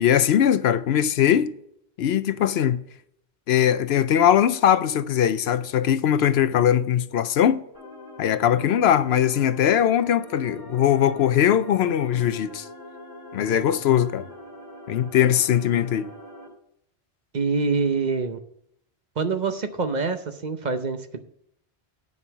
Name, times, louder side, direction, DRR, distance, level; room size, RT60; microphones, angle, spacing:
voice 1, 0.0-1.5 2.0-2.8 3.5-7.6 8.2-12.7 13.3-14.3 14.9-16.1, left 10 dB, 75° left, 0.8 m, -20 dB
sound 1, 7.7-16.5, left 1 dB, 20° left, 3.5 m, -43 dB
voice 2, 17.3-18.4 19.2-21.2, right 4 dB, 45° right, 0.8 m, -25 dB
9.6 x 5.5 x 7.1 m
omnidirectional pair, 1.1 m